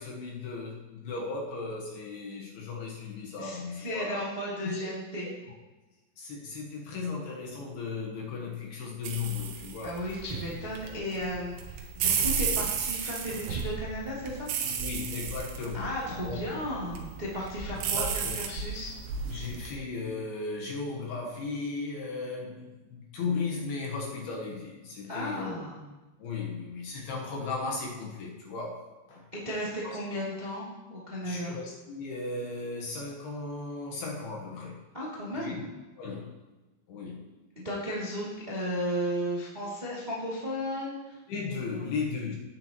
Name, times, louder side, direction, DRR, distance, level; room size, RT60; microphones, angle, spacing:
voice 1, 0.0-4.3 4.6-4.9 5.2-5.3 6.2-10.0 14.6-16.6 17.9-18.5 19.2-25.6 26.2-29.3 29.8-30.0 31.2-34.9 35.3-35.7 36.0-36.4 36.9-37.3 41.3-42.4, left 4 dB, 70° left, -2 dB, 2.6 m, -36 dB
voice 2, 3.4-5.3 9.8-14.5 15.7-18.9 25.1-25.8 29.3-31.5 34.9-35.6 37.5-41.2 41.7-41.8, equal, 50° right, -7 dB, 0.5 m, -34 dB
sound 1, 9.0-19.7, right 6 dB, 90° right, 3.7 m, -33 dB
16.0 x 8.9 x 3.0 m, 1.1 s
omnidirectional pair, 5.7 m